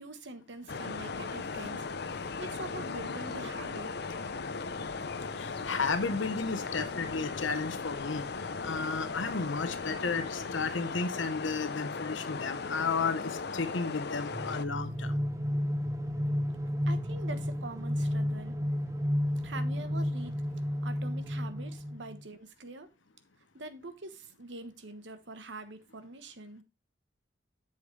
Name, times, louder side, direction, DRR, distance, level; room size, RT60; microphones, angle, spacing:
voice 1, 0.0-1.9 2.2-4.0 16.9-18.6 19.4-20.4 20.8-22.9 23.5-26.6, right 2 dB, 70° right, 1.2 m, -44 dB
sound 1, 0.7-14.6, left 4 dB, 60° left, 0.7 m, -37 dB
voice 2, 5.3-15.2, left 4 dB, 85° left, 0.9 m, -33 dB
sound 2, 14.3-22.2, equal, 15° right, 0.7 m, -32 dB
8.3 x 7.0 x 3.3 m
head